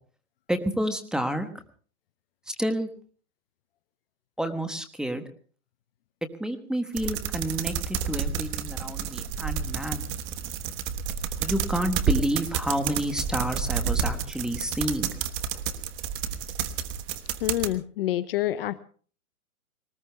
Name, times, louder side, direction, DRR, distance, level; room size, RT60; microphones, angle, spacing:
voice 1, 0.5-1.5 2.5-2.9 4.4-5.2 6.4-10.1 11.4-15.1 15.5-15.6, equal, ahead, 8 dB, 1.2 m, -29 dB
sound 1, 7.0-17.7, right 8 dB, 25° right, 1.3 m, -30 dB
voice 2, 17.4-18.8, left 14 dB, 40° left, 15 dB, 0.7 m, -27 dB
20.5 x 19.5 x 3.4 m, 0.43 s
hypercardioid pair, 140°, 44 cm